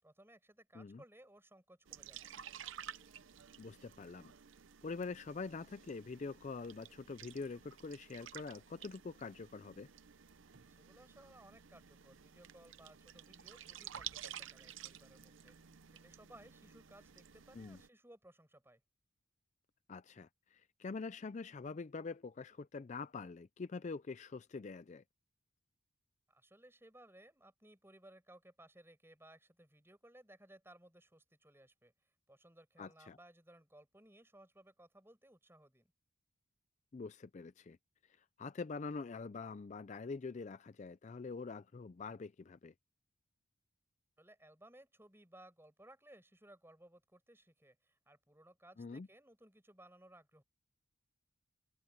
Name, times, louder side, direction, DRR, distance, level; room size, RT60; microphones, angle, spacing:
voice 1, 0.0-2.3 10.7-18.8 26.3-35.9 44.2-50.4, right 1 dB, 10° right, 7.0 m, -61 dB
sound 1, 1.9-17.9, right 9 dB, 65° right, 0.7 m, -53 dB
voice 2, 3.6-4.3 4.8-9.9 17.5-17.8 19.9-25.0 32.8-33.2 36.9-37.8 38.0-42.7 48.8-49.1, left 4 dB, 35° left, 0.4 m, -45 dB
open air
head